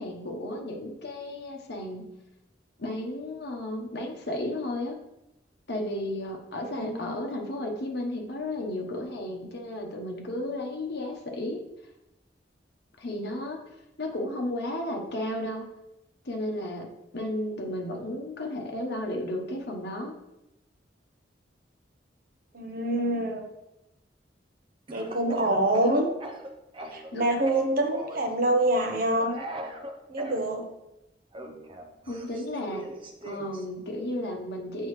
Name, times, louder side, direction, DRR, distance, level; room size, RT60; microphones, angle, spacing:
voice 1, 0.0-2.1 2.8-5.0 5.7-11.6 13.0-13.6 14.0-15.7 16.2-20.1 27.1-27.3 32.1-32.9 33.2-34.9, left 1 dB, 65° left, 2 dB, 1.1 m, -33 dB
voice 2, 6.6-7.2 22.5-23.5 24.9-26.1 26.9-29.4 30.1-30.7, right 1 dB, 55° right, 4 dB, 0.9 m, -26 dB
Speech / Cough, 24.9-27.1 27.5-28.3 29.2-30.4 31.3-33.6, right 1 dB, 30° right, 0.7 m, -40 dB
7.8 x 5.4 x 3.2 m, 0.92 s
head